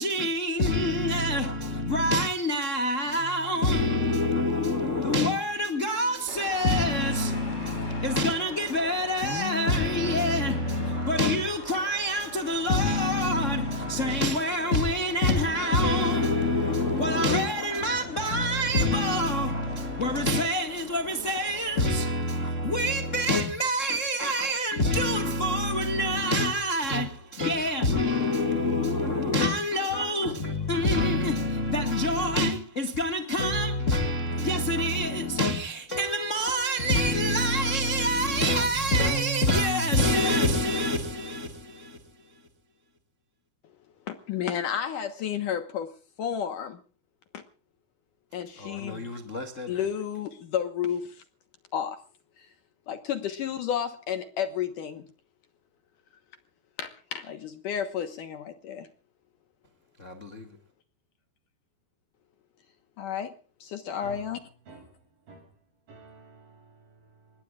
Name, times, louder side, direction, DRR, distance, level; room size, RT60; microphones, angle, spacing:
voice 1, 0.0-42.0 48.6-49.8 60.0-60.5, left 1 dB, 35° left, 1.3 m, -26 dB
sound 1, 6.3-21.9, left 2 dB, 15° left, 4.9 m, -42 dB
voice 2, 44.1-45.9 46.2-46.8 47.3-47.4 48.3-49.2 49.7-51.2 51.7-52.0 52.4-52.5 52.9-55.1 56.8-58.9 63.0-63.3 63.6-64.4, left 9 dB, 65° left, 2.5 m, -32 dB
voice 3, 64.7-65.5 65.9-67.4, right 2 dB, 65° right, 8.9 m, -50 dB
26.0 x 22.0 x 2.4 m
omnidirectional pair, 4.5 m